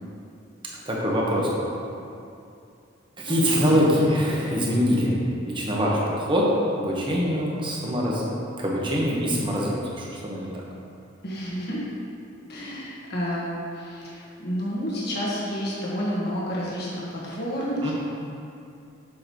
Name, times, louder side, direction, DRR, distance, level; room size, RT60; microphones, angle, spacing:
voice 1, 0.7-1.7 3.2-5.2 5.4-6.5 6.8-8.2 8.6-10.5 17.8-17.9, equal, 25° right, -4 dB, 1.2 m, -24 dB
voice 2, 11.2-11.8 12.5-17.9, equal, 60° left, -6 dB, 1.4 m, -30 dB
7.5 x 6.3 x 3.0 m, 2.6 s
head